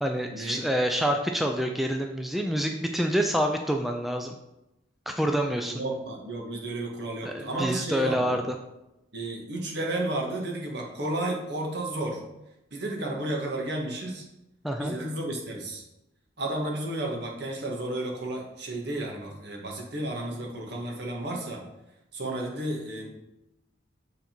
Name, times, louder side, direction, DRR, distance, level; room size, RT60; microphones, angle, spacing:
voice 1, 0.0-4.3 5.1-5.8 7.2-8.4 14.6-15.0, equal, ahead, 3 dB, 0.4 m, -27 dB
voice 2, 5.7-8.4 9.1-12.2 12.7-14.2 14.8-15.8 16.4-21.6 22.1-23.1, right 1 dB, 60° right, -1 dB, 1.5 m, -32 dB
8.1 x 4.0 x 4.5 m, 0.91 s
head